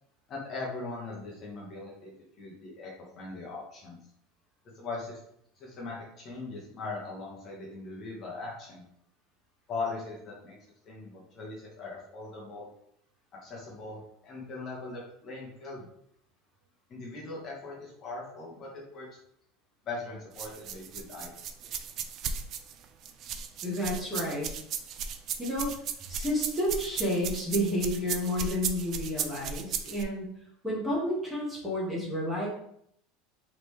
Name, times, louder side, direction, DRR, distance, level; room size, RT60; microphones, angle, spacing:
voice 1, 0.3-2.1 2.4-4.0 4.7-5.2 5.6-8.8 9.7-10.6 10.8-12.7 13.4-15.9 16.9-19.1 19.8-21.3, left 3 dB, 30° left, -4 dB, 1.1 m, -40 dB
sound 1, 20.4-30.0, right 7 dB, 40° right, 0.4 m, -35 dB
voice 2, 23.6-24.5 25.4-25.7 26.1-30.2 30.6-32.5, equal, 5° right, -6 dB, 1.4 m, -30 dB
3.8 x 3.4 x 3.2 m, 0.71 s
supercardioid pair, 155°, 0 cm